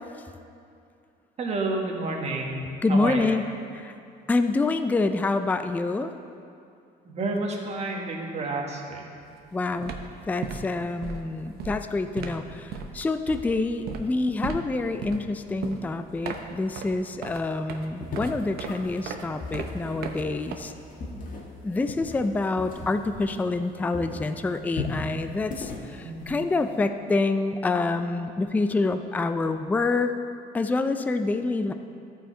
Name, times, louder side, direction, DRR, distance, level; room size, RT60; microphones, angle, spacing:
voice 1, 1.4-3.2 7.1-9.1 26.0-26.3, right 2 dB, 40° right, 0 dB, 1.4 m, -30 dB
voice 2, 2.8-3.4 3.7-3.9 4.3-6.1 9.5-9.9 10.3-20.7 21.6-30.1 30.5-31.7, left 3 dB, 10° left, 9 dB, 0.3 m, -27 dB
sound 1, 9.2-9.4 9.7-21.1, right 5 dB, 70° right, 0.8 m, -38 dB
sound 2, 18.0-23.7 23.9-26.8, left 2 dB, 55° left, 1.4 m, -37 dB
13.5 x 4.6 x 4.4 m, 2.4 s
cardioid pair, 110°, 17 cm